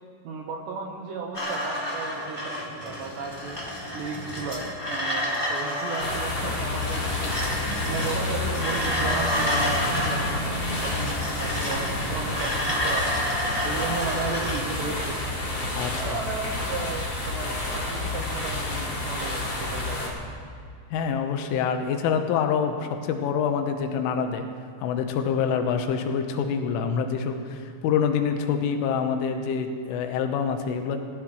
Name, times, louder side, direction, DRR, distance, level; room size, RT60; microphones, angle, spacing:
voice 1, 0.2-3.6 3.9-7.4 7.8-13.1 13.6-15.2 15.9-20.1, right 4 dB, 70° right, -1 dB, 3.0 m, -35 dB
sound 1, 1.3-14.7, equal, 10° left, 1.5 m, -30 dB
sound 2, 6.0-20.1, left 2 dB, 30° left, 2.6 m, -29 dB
voice 2, 15.8-16.2 20.9-24.5 24.8-31.0, left 6 dB, 80° left, 5 dB, 3.5 m, -26 dB
26.0 x 16.0 x 3.2 m, 2.3 s
omnidirectional pair, 5.8 m